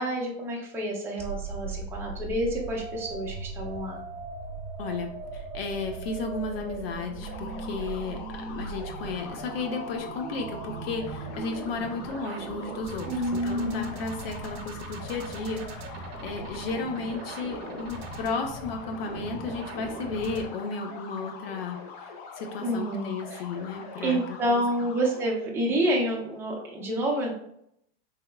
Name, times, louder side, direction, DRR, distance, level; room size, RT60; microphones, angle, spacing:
voice 1, 0.0-4.0 13.1-13.9 22.6-23.4 24.0-27.3, right 1 dB, 10° right, -3 dB, 0.6 m, -28 dB
sound 1, 1.2-20.5, right 4 dB, 75° right, 0.7 m, -39 dB
voice 2, 4.8-24.6, left 4 dB, 70° left, 4 dB, 0.8 m, -34 dB
sound 2, 7.2-25.3, left 5 dB, 35° left, 0.5 m, -44 dB
3.5 x 2.9 x 2.3 m, 0.73 s
supercardioid pair, 145°, 30 cm